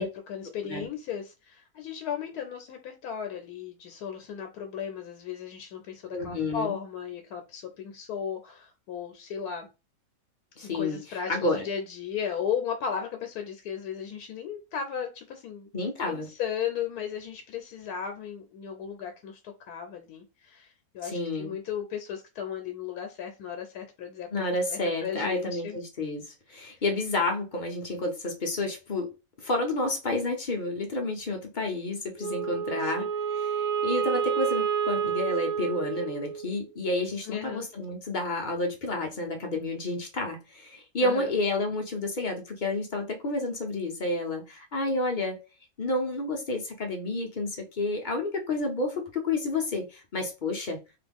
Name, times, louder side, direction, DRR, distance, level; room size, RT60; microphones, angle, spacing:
voice 1, 0.0-9.7 10.6-15.7 16.1-25.8 26.6-26.8 32.8-33.1 37.2-37.7 41.0-41.3, left 8 dB, 80° left, 1.1 m, -36 dB
voice 2, 6.1-6.7 10.6-11.6 15.7-16.3 21.0-21.5 24.3-29.1 29.4-45.4 45.8-50.8, left 2 dB, 55° left, 0.5 m, -30 dB
Wind instrument woodwind instrument, 32.2-36.6, right 7 dB, 85° right, 1.2 m, -29 dB
3.0 x 2.4 x 3.4 m
omnidirectional pair, 1.6 m